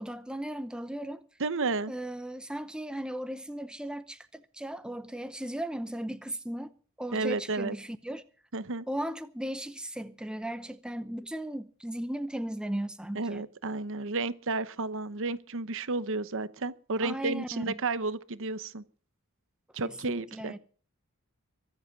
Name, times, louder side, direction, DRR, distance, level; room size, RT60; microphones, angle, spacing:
voice 1, 0.0-1.3 1.9-6.7 7.0-8.2 8.9-13.5 17.0-17.8 19.8-20.6, right 1 dB, 5° right, 0.7 m, -36 dB
voice 2, 1.4-1.9 7.1-7.7 8.5-8.9 13.1-18.8 19.7-20.5, right 3 dB, 60° right, 1.0 m, -32 dB
23.5 x 8.0 x 6.0 m
head